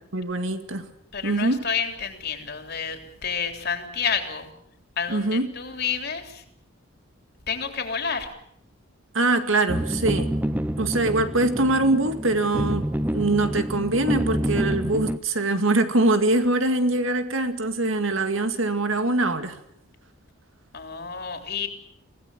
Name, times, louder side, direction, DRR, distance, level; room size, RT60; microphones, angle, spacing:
voice 1, 0.1-0.9 1.2-1.7 5.1-5.5 9.1-10.3 10.8-19.6, right 2 dB, 75° right, 8 dB, 2.2 m, -23 dB
voice 2, 1.1-4.5 5.0-6.4 7.5-8.3 20.7-21.7, left 6 dB, 55° left, 6 dB, 3.5 m, -29 dB
sound 1, 9.7-15.2, right 1 dB, 10° right, 0.8 m, -27 dB
25.0 x 17.5 x 8.6 m, 0.73 s
head